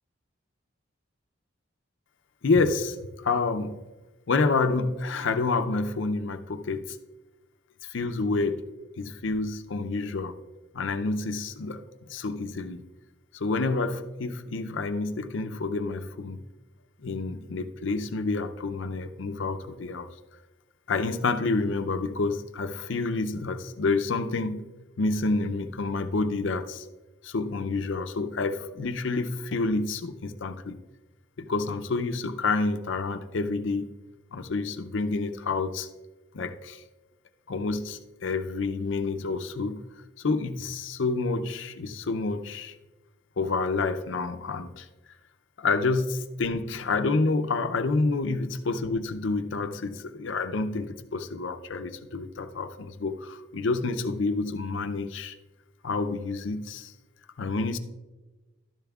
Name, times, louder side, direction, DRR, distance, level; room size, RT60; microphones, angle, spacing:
voice 1, 2.4-3.8 4.3-7.0 7.8-8.6 9.0-10.4 10.7-11.8 12.1-12.8 13.3-16.5 17.0-20.1 20.9-24.6 25.0-26.9 27.2-30.8 31.4-33.9 34.3-35.9 36.3-36.8 37.5-39.8 40.2-42.8 43.4-44.9 45.6-55.4 55.8-56.9 57.4-57.8, left 3 dB, 70° left, 0.5 m, -28 dB
12.0 x 10.5 x 2.3 m
head